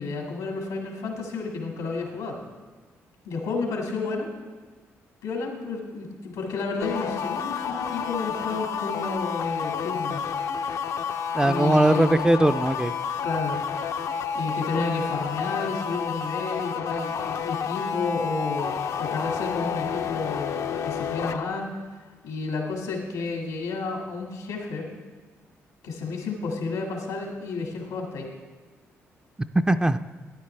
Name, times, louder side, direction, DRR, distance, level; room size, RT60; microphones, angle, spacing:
voice 1, 0.0-2.4 3.3-4.3 5.2-10.3 11.4-12.2 13.2-13.6 14.3-20.6 20.8-21.7 22.2-24.9 25.8-28.3, left 4 dB, 90° left, 1 dB, 1.8 m, -31 dB
sound 1, 6.8-21.4, left 7 dB, 65° left, 0.5 m, -30 dB
voice 2, 11.3-12.9 29.5-30.0, right 1 dB, 15° right, 10 dB, 0.4 m, -20 dB
12.5 x 9.5 x 3.3 m, 1.3 s
supercardioid pair, 60°, 6 cm